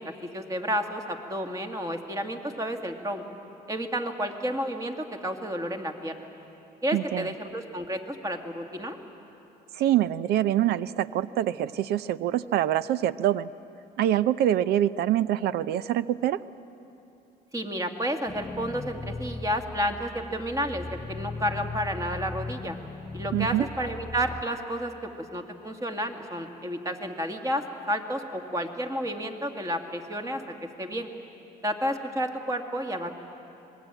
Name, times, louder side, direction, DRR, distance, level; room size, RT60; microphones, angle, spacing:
voice 1, 0.0-3.2 3.7-6.3 6.8-9.0 17.5-22.8 23.1-30.4 30.8-31.1 31.6-33.1, equal, 20° right, 4 dB, 2.1 m, -31 dB
voice 2, 6.9-7.3 9.7-13.5 14.0-16.4 23.3-23.6, right 12 dB, 75° right, 16 dB, 0.6 m, -25 dB
sound 1, 18.3-24.4, left 3 dB, 15° left, 0.6 m, -38 dB
26.0 x 20.5 x 9.0 m, 2.9 s
cardioid pair, 110°, 17 cm